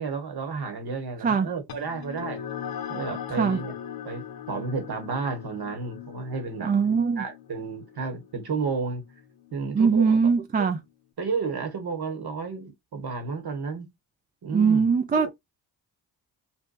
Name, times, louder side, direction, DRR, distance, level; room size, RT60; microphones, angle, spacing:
voice 1, 0.0-2.4 2.9-3.7 4.0-6.7 7.2-9.0 9.5-10.2 10.6-10.7 11.2-13.9 14.4-14.9 15.2-15.3, right 4 dB, 50° right, 1.1 m, -32 dB
sound 1, 1.7-10.5, left 9 dB, 50° left, 0.7 m, -40 dB
voice 2, 6.6-7.2 9.7-10.8 14.5-15.3, right 5 dB, 20° right, 0.4 m, -21 dB
2.8 x 2.2 x 2.2 m
hypercardioid pair, 40°, 49 cm